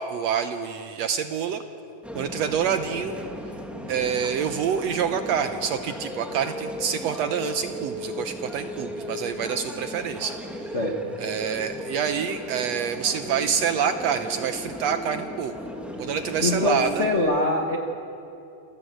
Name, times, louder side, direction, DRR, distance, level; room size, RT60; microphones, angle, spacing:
voice 1, 0.0-1.6 2.1-3.2 3.9-10.7 11.2-15.5 16.0-17.1, right 7 dB, 75° right, 9 dB, 1.6 m, -27 dB
sound 1, 2.0-17.2, left 1 dB, ahead, 0.6 m, -36 dB
voice 2, 10.7-11.1 16.4-17.8, left 2 dB, 80° left, 2 dB, 0.6 m, -24 dB
28.0 x 16.0 x 7.9 m, 2.7 s
omnidirectional pair, 3.7 m